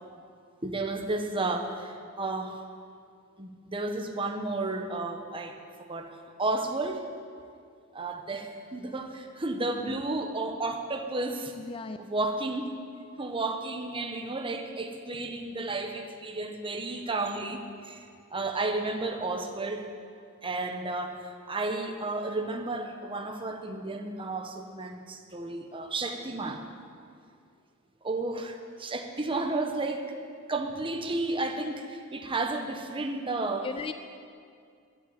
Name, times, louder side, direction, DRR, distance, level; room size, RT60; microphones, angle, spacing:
voice 1, 0.6-2.6 3.4-5.6 5.9-7.0 7.9-11.5 12.0-12.7 13.2-18.0 18.3-19.9 20.4-26.6 28.0-30.0 30.5-33.7, right 2 dB, 25° right, 4 dB, 1.2 m, -32 dB
voice 2, 11.6-12.0 33.6-33.9, left 4 dB, 25° left, 9 dB, 0.4 m, -36 dB
13.0 x 11.0 x 9.1 m, 2.2 s
head